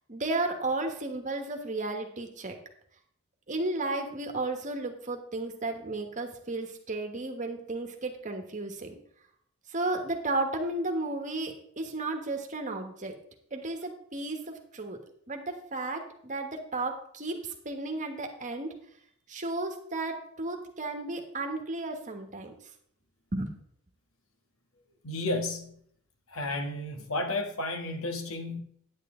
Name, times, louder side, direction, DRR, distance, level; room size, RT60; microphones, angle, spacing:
voice 1, 0.1-2.6 3.5-9.0 9.7-13.1 13.5-15.0 15.3-18.8 19.3-22.5 23.3-23.5, right 2 dB, 35° right, 4 dB, 1.3 m, -33 dB
voice 2, 25.0-25.8 26.3-28.6, left 2 dB, 80° left, 5 dB, 1.4 m, -32 dB
9.5 x 9.3 x 3.7 m, 0.66 s
head